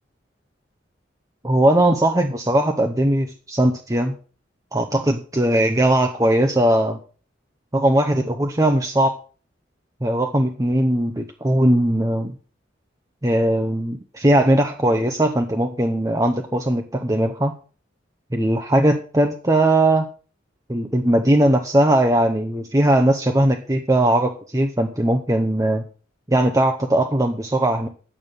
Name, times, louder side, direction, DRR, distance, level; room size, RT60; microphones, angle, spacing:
voice 1, 1.4-4.2 4.7-7.0 7.7-9.2 10.0-12.3 13.2-17.5 18.3-20.1 20.7-25.8 26.3-27.9, right 1 dB, 20° right, 4 dB, 0.9 m, -19 dB
11.0 x 7.2 x 6.6 m, 0.38 s
head